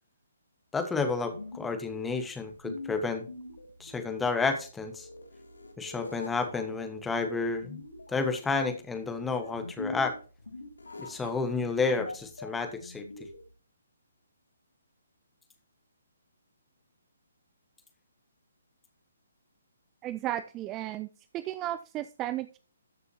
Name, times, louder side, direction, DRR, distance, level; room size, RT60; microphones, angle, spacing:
voice 1, 0.7-3.3 3.8-5.1 5.8-7.8 8.1-10.2 11.0-13.1, left 4 dB, 10° left, 7 dB, 1.5 m, -31 dB
sound 1, 1.1-13.5, left 2 dB, 70° left, 1.9 m, -44 dB
voice 2, 20.0-21.1 21.3-22.6, right 14 dB, 20° right, 13 dB, 0.4 m, -34 dB
13.5 x 6.7 x 2.9 m, 0.36 s
figure-of-eight pair, 135°, 0 cm